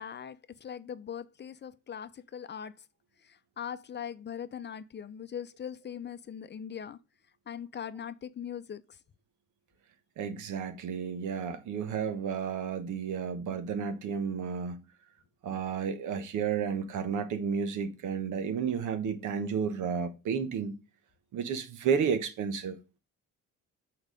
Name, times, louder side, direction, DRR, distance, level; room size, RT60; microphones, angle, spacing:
voice 1, 0.0-2.7 3.2-7.0 7.5-9.0, left 8 dB, 35° left, 0.6 m, -41 dB
voice 2, 10.2-14.8 15.4-20.7 21.3-22.8, right 6 dB, 80° right, 1.2 m, -32 dB
6.4 x 4.6 x 5.2 m
cardioid pair, 90°, 30 cm